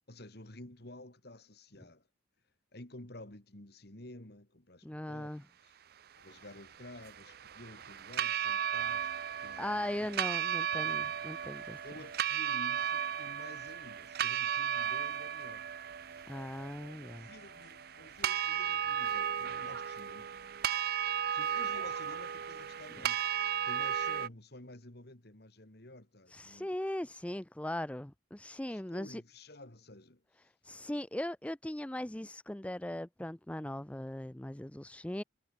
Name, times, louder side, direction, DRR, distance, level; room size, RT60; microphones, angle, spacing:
voice 1, 0.1-2.1 2.7-5.3 5.6-5.8 6.2-9.1 9.4-10.1 10.5-11.4 11.8-15.7 16.1-16.2 16.8-20.3 20.6-21.0 21.3-23.4 23.6-26.7 28.7-30.5, left 1 dB, 55° left, 2.5 m, -52 dB
voice 2, 4.8-5.4 9.6-11.8 16.3-17.3 26.3-29.2 30.6-35.2, left 1 dB, 5° left, 0.4 m, -39 dB
sound 1, 6.2-23.9, left 3 dB, 80° left, 1.5 m, -64 dB
sound 2, 6.3-24.3, right 9 dB, 50° right, 0.5 m, -35 dB
head